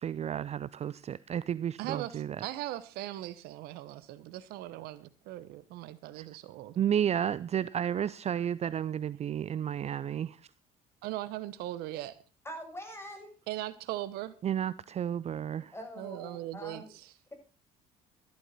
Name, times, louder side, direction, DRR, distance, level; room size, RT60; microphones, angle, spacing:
voice 1, 0.0-2.5 6.2-6.3 6.8-10.4 14.4-15.7, right 9 dB, 40° right, 0.5 m, -32 dB
voice 2, 1.8-6.8 11.0-12.2 13.5-14.3 16.0-17.1, right 15 dB, 65° right, 1.0 m, -39 dB
voice 3, 12.4-13.3 15.7-16.9, equal, 15° left, 7.5 m, -43 dB
14.0 x 13.0 x 4.1 m
hypercardioid pair, 55°, 17 cm